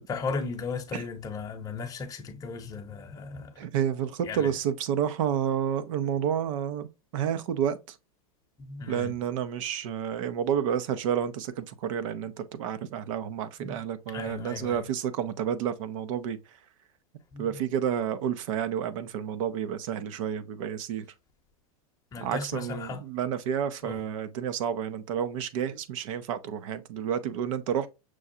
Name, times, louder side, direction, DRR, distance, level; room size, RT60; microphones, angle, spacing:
voice 1, 0.1-3.5 4.2-4.5 8.6-9.1 13.6-13.8 14.1-14.9 17.3-17.6 22.1-23.0 23.8-24.0, left 4 dB, 20° left, 0.8 m, -36 dB
voice 2, 3.6-6.9 7.1-8.0 8.9-16.4 17.4-21.1 22.2-27.9, right 9 dB, 60° right, 0.7 m, -30 dB
6.2 x 2.3 x 2.7 m
hypercardioid pair, 130°, 19 cm